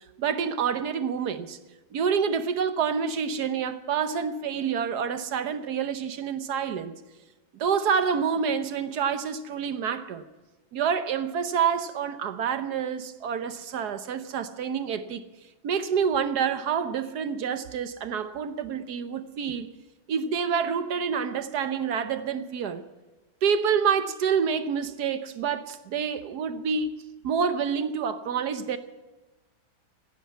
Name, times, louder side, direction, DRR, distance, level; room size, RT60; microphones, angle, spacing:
voice 1, 0.2-1.6 1.9-6.9 7.5-10.2 10.7-15.2 15.6-19.7 20.1-22.8 23.4-26.9 27.2-28.8, right 7 dB, 60° right, 1.3 m, -27 dB
15.0 x 10.0 x 9.5 m
omnidirectional pair, 2.1 m